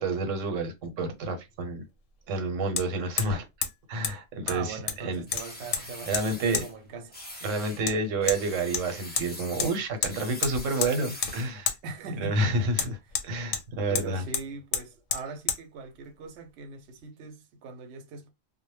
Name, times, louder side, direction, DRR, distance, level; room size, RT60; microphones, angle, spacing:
voice 1, 0.0-1.8 2.3-3.5 3.9-5.2 6.1-6.6 7.4-11.7 12.2-13.0 13.2-14.2, right 2 dB, 90° right, 1.0 m, -29 dB
Hammer, 0.8-0.9 2.8-2.9 3.2-3.4 3.6-3.7 4.0-4.1 4.5-5.0 5.3-5.8 6.1-6.2 6.5-6.7 7.9-8.0 8.3-8.4 8.7-9.3 9.6-9.7 10.0-10.1 10.4-10.9 11.2-11.4 11.7-11.8 12.8-13.6 14.0-14.1 14.3-14.4 14.7-14.8 15.1-15.2 15.5-15.6, left 8 dB, 90° left, 1.0 m, -29 dB
voice 2, 4.4-7.2 11.8-12.9 13.9-18.3, right 4 dB, 65° right, 0.8 m, -40 dB
sound 1, 5.3-6.7 7.1-7.8 8.2-11.6, left 1 dB, 15° left, 0.3 m, -43 dB
2.1 x 2.0 x 3.1 m
omnidirectional pair, 1.3 m